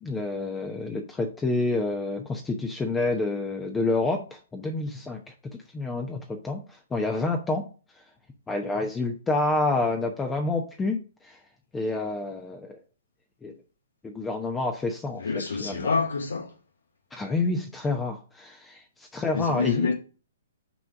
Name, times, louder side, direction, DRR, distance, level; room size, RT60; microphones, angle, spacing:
voice 1, 0.0-5.2 5.5-7.6 8.5-11.0 11.2-11.4 11.7-12.8 13.4-13.5 14.0-15.2 15.5-15.9 17.1-19.9, left 2 dB, 10° left, 0.9 m, -28 dB
voice 2, 15.2-16.5 19.3-19.9, left 4 dB, 75° left, 1.4 m, -27 dB
6.1 x 3.8 x 5.7 m
figure-of-eight pair, 120°, 0 cm